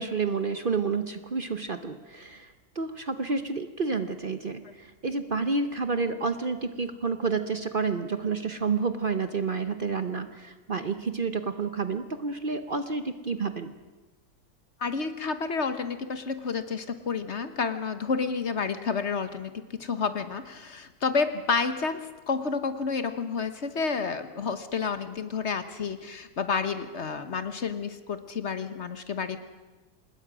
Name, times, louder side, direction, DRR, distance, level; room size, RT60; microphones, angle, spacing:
voice 1, 0.0-13.7, right 4 dB, 40° right, 9 dB, 1.0 m, -30 dB
voice 2, 14.8-29.4, left 5 dB, 50° left, 10 dB, 1.3 m, -30 dB
26.5 x 20.5 x 6.1 m, 1.2 s
omnidirectional pair, 1.6 m